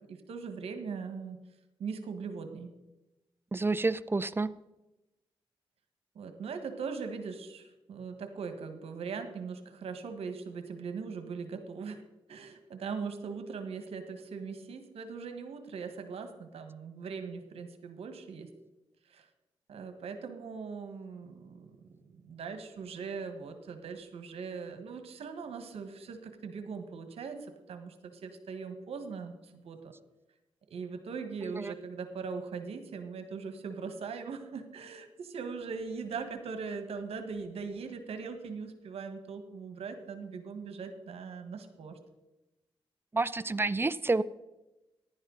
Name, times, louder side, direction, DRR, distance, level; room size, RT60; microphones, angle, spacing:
voice 1, 0.1-1.4 1.8-2.7 6.1-12.0 12.3-18.5 19.1-19.3 19.7-29.9 30.7-42.0, right 5 dB, 80° right, 8 dB, 1.5 m, -40 dB
voice 2, 3.5-4.5 31.6-31.7 43.1-44.2, right 3 dB, 20° right, 17 dB, 0.6 m, -29 dB
15.0 x 11.0 x 4.0 m, 0.99 s
cardioid pair, 65°, 10 cm